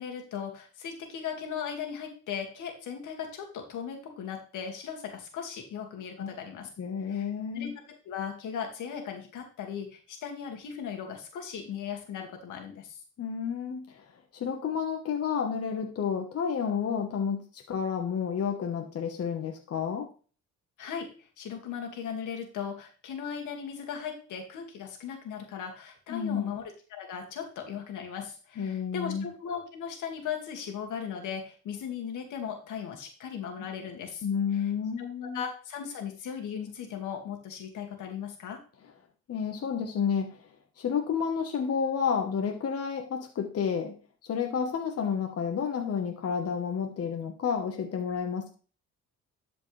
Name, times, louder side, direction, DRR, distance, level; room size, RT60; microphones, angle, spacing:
voice 1, 0.0-6.7 7.1-7.3 7.5-7.7 8.1-13.0 20.8-21.1 21.4-34.3 34.5-34.7 35.0-38.6, left 7 dB, 80° left, 3 dB, 2.2 m, -38 dB
voice 2, 6.8-7.7 13.2-20.1 26.1-26.5 28.6-29.3 34.2-35.4 39.3-40.5 40.8-43.9 44.2-48.5, left 7 dB, 50° left, 3 dB, 1.3 m, -30 dB
12.0 x 5.1 x 3.3 m, 0.38 s
cardioid pair, 90°, 30 cm